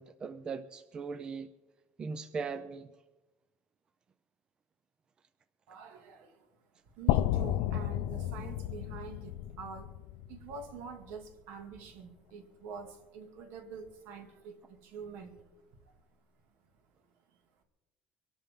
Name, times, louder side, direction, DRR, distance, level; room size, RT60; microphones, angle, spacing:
voice 1, 0.0-1.5 2.0-2.9, right 5 dB, 20° right, 0.4 m, -39 dB
voice 2, 5.7-6.5 6.9-9.9 10.3-15.5 15.8-15.9, right 5 dB, 60° right, 2.3 m, -46 dB
sound 1, 7.1-11.1, left 13 dB, 75° left, 0.4 m, -32 dB
23.5 x 12.0 x 3.7 m
cardioid pair, 175°, 4 cm